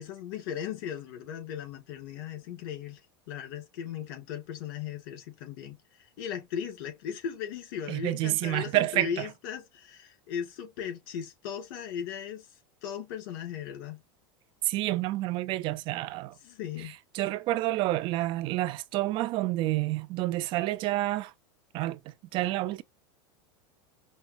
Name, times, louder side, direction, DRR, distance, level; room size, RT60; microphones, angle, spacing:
voice 1, 0.0-14.0 16.4-17.0, left 8 dB, 65° left, 2.1 m, -37 dB
voice 2, 7.9-9.3 14.7-16.3 17.1-21.3 21.7-22.0 22.3-22.8, right 17 dB, 45° right, 0.4 m, -29 dB
5.4 x 2.2 x 2.7 m
supercardioid pair, 120°, 12 cm